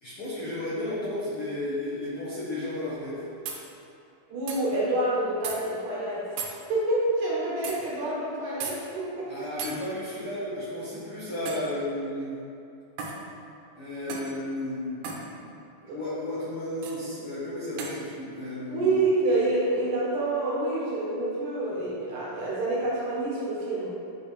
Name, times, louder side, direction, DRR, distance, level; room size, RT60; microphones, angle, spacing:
voice 1, 0.0-3.2 9.3-12.4 13.7-15.5 15.8-18.9, left 1 dB, 55° left, -12 dB, 1.7 m, -33 dB
sound 1, 3.5-3.6 4.5-4.6 5.4-5.6 6.4-6.6 7.6-7.8 8.6-8.8 9.6-9.8 11.5-11.7 13.0-13.2 14.1-14.3 15.0-15.2 16.8-17.0 17.8-18.0, right 5 dB, 85° right, 2.6 m, -35 dB
voice 2, 4.3-6.4 6.7-9.4 15.9-16.0 18.7-23.9, right 2 dB, 65° right, -7 dB, 2.7 m, -27 dB
8.7 x 5.4 x 3.3 m, 2.6 s
omnidirectional pair, 4.2 m